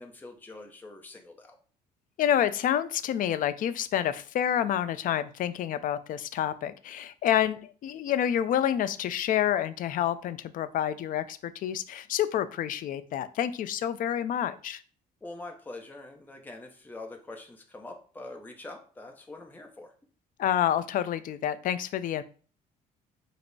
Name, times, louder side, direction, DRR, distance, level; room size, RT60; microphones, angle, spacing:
voice 1, 0.0-1.6 15.2-19.9, left 2 dB, 10° left, 3 dB, 0.6 m, -44 dB
voice 2, 2.2-14.8 20.4-22.2, left 10 dB, 55° left, 13 dB, 0.4 m, -28 dB
5.1 x 2.0 x 4.6 m, 0.41 s
cardioid pair, 110°, 17 cm